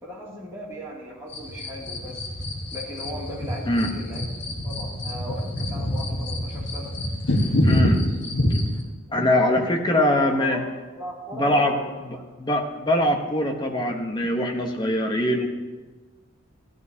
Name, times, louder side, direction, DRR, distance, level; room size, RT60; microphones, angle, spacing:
voice 1, 0.0-2.3 2.7-4.2 4.6-6.9 9.1-9.4 9.7-10.7 11.0-12.6, equal, 15° right, -7 dB, 2.4 m, -37 dB
sound 1, 1.3-8.8, left 1 dB, 60° left, 1.4 m, -26 dB
voice 2, 7.6-8.1 9.1-10.6 11.3-11.7 12.0-15.5, left 1 dB, 20° left, 2 dB, 1.0 m, -23 dB
13.5 x 12.5 x 2.8 m, 1.3 s
head